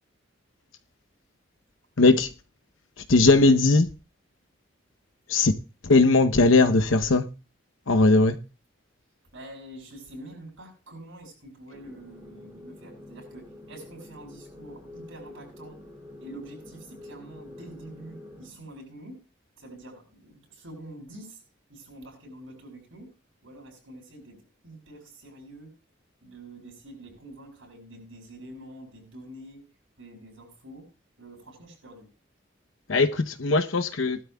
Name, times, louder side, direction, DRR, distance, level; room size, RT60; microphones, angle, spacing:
voice 1, 2.0-2.3 3.1-3.9 5.3-5.5 5.8-7.3 7.9-8.4 32.9-34.2, left 3 dB, 85° left, 0.9 m, -19 dB
voice 2, 9.3-15.8 16.2-19.2 19.6-21.4 21.7-23.1 23.4-24.4 24.6-25.7 26.2-29.6 30.0-30.9 31.2-32.1, right 1 dB, 90° right, 7.8 m, -46 dB
sound 1, 11.7-18.5, left 1 dB, 15° right, 3.0 m, -47 dB
19.5 x 12.0 x 2.3 m
head